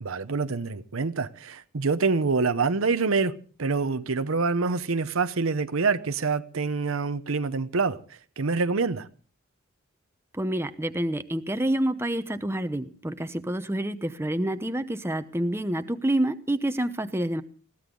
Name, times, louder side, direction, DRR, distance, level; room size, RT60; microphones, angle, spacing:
voice 1, 0.0-9.1, right 4 dB, 75° right, 0.8 m, -26 dB
voice 2, 10.3-17.4, right 1 dB, 10° right, 0.8 m, -28 dB
21.0 x 15.5 x 3.8 m
head